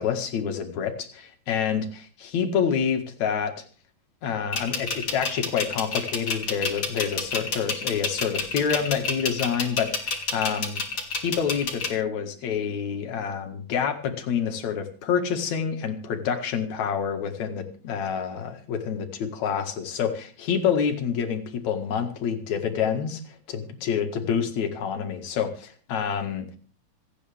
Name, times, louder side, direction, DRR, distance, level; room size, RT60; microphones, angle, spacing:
voice 1, 0.0-3.5 4.2-10.8 11.1-26.6, left 7 dB, 75° left, 5 dB, 3.1 m, -27 dB
sound 1, 4.5-11.9, left 4 dB, 40° left, 3.1 m, -28 dB
27.0 x 9.2 x 3.5 m, 0.42 s
omnidirectional pair, 3.3 m